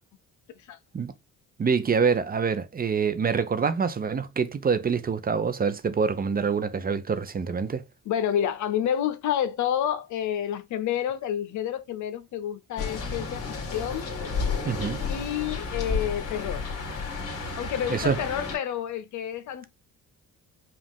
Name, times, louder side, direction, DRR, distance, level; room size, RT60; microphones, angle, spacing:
voice 1, 1.6-7.8 14.7-15.0 17.9-18.2, right 6 dB, 30° right, 0.6 m, -26 dB
voice 2, 8.1-14.1 15.0-16.6 17.6-19.7, left 10 dB, 75° left, 0.7 m, -29 dB
sound 1, 12.8-18.6, left 4 dB, 50° left, 1.9 m, -32 dB
5.1 x 2.5 x 3.5 m
cardioid pair, 90°, 30 cm